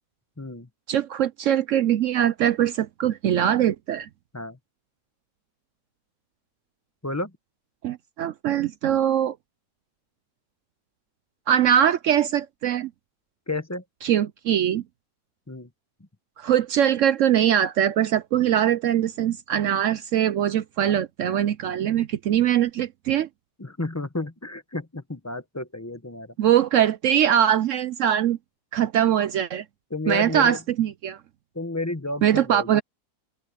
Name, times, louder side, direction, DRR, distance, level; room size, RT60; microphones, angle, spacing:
voice 1, 0.4-0.7 4.3-4.6 7.0-7.3 13.5-13.8 15.5-15.7 23.6-26.3 29.9-30.6 31.5-32.8, left 2 dB, 15° left, 0.8 m, -31 dB
voice 2, 0.9-4.1 7.8-9.4 11.5-12.9 14.0-14.8 16.4-23.3 26.4-28.4 28.7-29.6 30.1-31.2 32.2-32.8, right 10 dB, 70° right, 0.7 m, -22 dB
open air
omnidirectional pair, 1.8 m